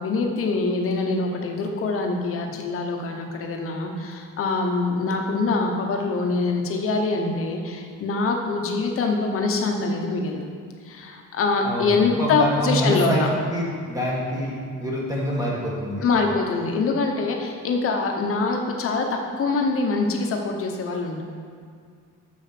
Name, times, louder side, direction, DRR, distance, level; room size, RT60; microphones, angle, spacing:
voice 1, 0.0-10.5 10.8-13.3 16.0-21.2, left 3 dB, 45° left, 3 dB, 1.1 m, -24 dB
voice 2, 11.6-13.2 13.5-16.0, equal, 10° right, -5 dB, 1.8 m, -26 dB
7.0 x 6.8 x 5.9 m, 2.2 s
cardioid pair, 155°, 31 cm